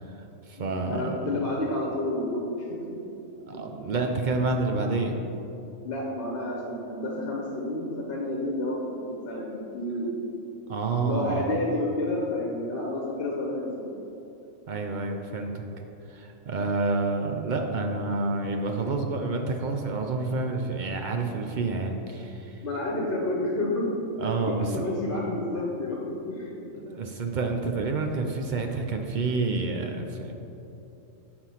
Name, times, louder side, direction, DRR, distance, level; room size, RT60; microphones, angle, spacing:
voice 1, 0.0-1.1 3.5-5.1 10.7-11.5 14.7-15.6 16.1-22.6 24.2-24.9 26.9-30.3, right 3 dB, 65° right, 3 dB, 0.4 m, -29 dB
voice 2, 0.6-2.8 3.2-3.3 5.8-10.2 11.0-13.9 22.6-26.7, left 1 dB, 50° left, -2 dB, 1.1 m, -30 dB
7.7 x 4.4 x 5.6 m, 2.9 s
omnidirectional pair, 1.4 m